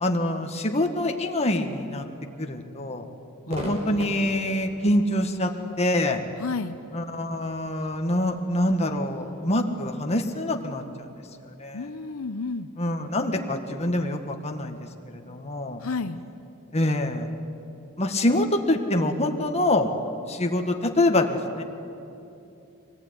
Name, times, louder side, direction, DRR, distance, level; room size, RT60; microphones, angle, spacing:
voice 1, 0.0-2.0 2.4-3.1 3.5-5.5 5.8-6.2 6.9-11.1 11.6-11.9 12.8-15.8 16.7-17.3 18.0-19.9 20.3-21.6, left 1 dB, 30° left, 4 dB, 1.8 m, -25 dB
voice 2, 3.5-4.6 6.4-6.8 11.7-12.7 15.8-16.2, left 4 dB, 75° left, 9 dB, 0.8 m, -33 dB
Crowd / Fireworks, 3.5-10.8, equal, 30° right, 4.1 m, -43 dB
24.5 x 19.5 x 9.8 m, 2.8 s
head